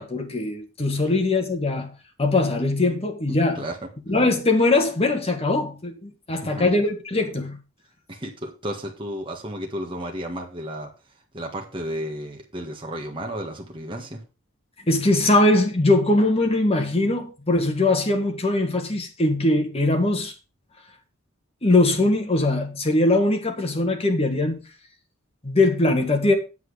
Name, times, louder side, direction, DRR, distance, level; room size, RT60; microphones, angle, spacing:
voice 1, 0.0-1.9 2.2-3.6 4.1-7.6 14.9-20.3 21.6-24.6 25.4-26.3, left 2 dB, 30° left, 1.8 m, -21 dB
voice 2, 6.3-6.7 8.1-10.9 11.3-14.2, equal, 25° right, 1.7 m, -33 dB
8.3 x 7.8 x 4.9 m
head